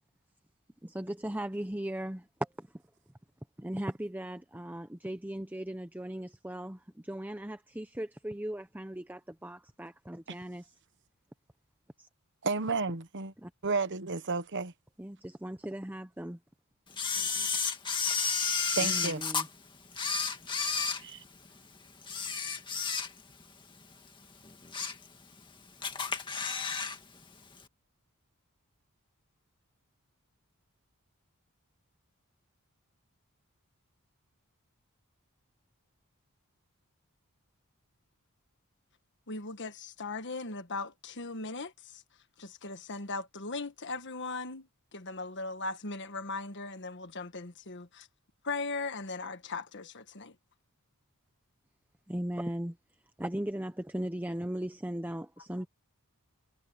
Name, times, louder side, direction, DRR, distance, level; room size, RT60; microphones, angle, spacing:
voice 1, 0.8-2.3 2.6-2.7 3.6-10.7 12.0-12.1 13.4-13.5 15.0-16.4 18.8-19.5 52.1-52.8 53.2-55.7, right 1 dB, 10° right, 0.8 m, -38 dB
voice 2, 12.4-13.3 13.6-14.7 18.8-19.2 21.0-21.2, right 4 dB, 55° right, 1.2 m, -32 dB
Camera, 17.0-19.5 19.9-21.6 22.0-23.4 23.8-23.9 24.4-25.1 25.4-25.5 25.8-27.0 27.2-27.3, left 5 dB, 20° left, 2.0 m, -32 dB
voice 3, 39.3-41.7 42.4-44.7 44.9-48.1 48.4-50.3, left 3 dB, 55° left, 1.5 m, -38 dB
head